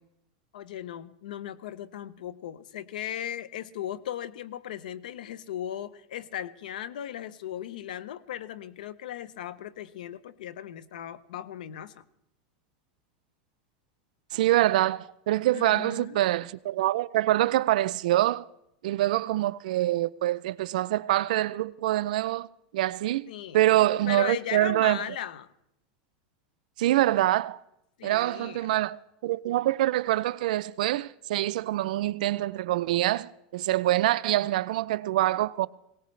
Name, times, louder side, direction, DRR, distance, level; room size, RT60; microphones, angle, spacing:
voice 1, 0.5-12.0 15.5-16.3 23.3-23.6 24.1-25.5 28.0-28.7, left 11 dB, 85° left, 0.7 m, -37 dB
voice 2, 14.3-18.4 18.8-22.5 22.7-23.3 23.5-25.1 26.8-27.6 28.0-35.7, right 15 dB, 75° right, 0.4 m, -25 dB
20.5 x 18.0 x 3.2 m
supercardioid pair, 150°, 4 cm